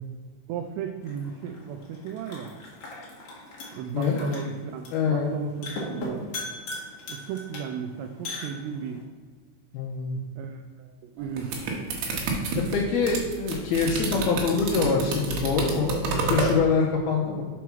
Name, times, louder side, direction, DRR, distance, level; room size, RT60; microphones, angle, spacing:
voice 1, 0.5-2.5 3.7-6.3 7.1-9.0 10.4-11.5, right 7 dB, 85° right, 5 dB, 2.4 m, -35 dB
sound 1, 1.0-9.0, left 2 dB, 55° left, 2.0 m, -40 dB
voice 2, 3.9-4.2 4.9-5.3 9.7-10.2 12.6-16.0 16.2-17.4, left 5 dB, 80° left, -1 dB, 2.3 m, -25 dB
sound 2, 11.2-16.6, right 3 dB, 70° right, 3.0 m, -29 dB
7.0 x 4.6 x 5.9 m, 1.5 s
omnidirectional pair, 5.4 m